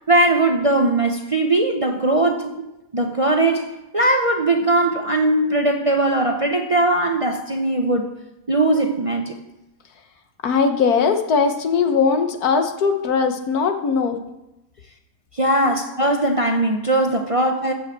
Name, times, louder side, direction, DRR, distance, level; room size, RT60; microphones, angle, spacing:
voice 1, 0.1-2.6 2.9-8.1 8.5-9.4 15.3-17.7, right 2 dB, 30° right, 0.7 m, -19 dB
voice 2, 10.4-14.2, left 5 dB, 75° left, 1.6 m, -19 dB
14.5 x 5.8 x 7.6 m
omnidirectional pair, 1.6 m